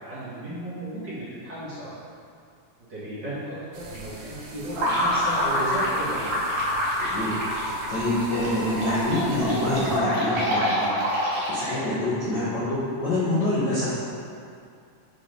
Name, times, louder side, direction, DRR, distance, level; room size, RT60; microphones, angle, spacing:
voice 1, 0.0-1.9 2.9-6.3, right 1 dB, 40° right, -11 dB, 1.9 m, -34 dB
sound 1, 3.7-10.0, right 2 dB, 80° right, 2.3 m, -37 dB
sound 2, 4.7-12.0, equal, 65° right, 2.1 m, -26 dB
voice 2, 6.9-10.9 11.5-14.0, left 1 dB, 85° left, -10 dB, 0.9 m, -26 dB
5.5 x 4.3 x 5.1 m, 2.4 s
omnidirectional pair, 3.6 m